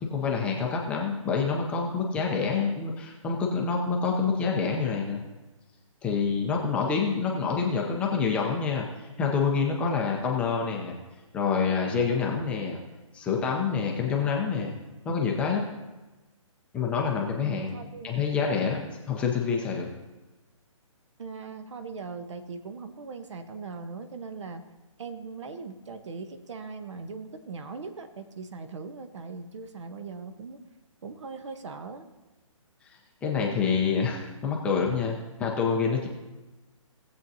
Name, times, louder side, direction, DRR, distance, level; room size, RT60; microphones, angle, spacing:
voice 1, 0.0-5.2 6.0-11.0 11.3-12.8 13.1-14.8 15.1-15.6 16.7-18.8 19.1-19.9 32.8-36.1, left 5 dB, 5° left, -1 dB, 0.5 m, -27 dB
voice 2, 17.4-18.1 21.2-24.6 25.0-30.6 31.0-32.1, right 4 dB, 60° right, 9 dB, 1.0 m, -40 dB
18.5 x 7.6 x 2.7 m, 1.1 s
hypercardioid pair, 160°, 17 cm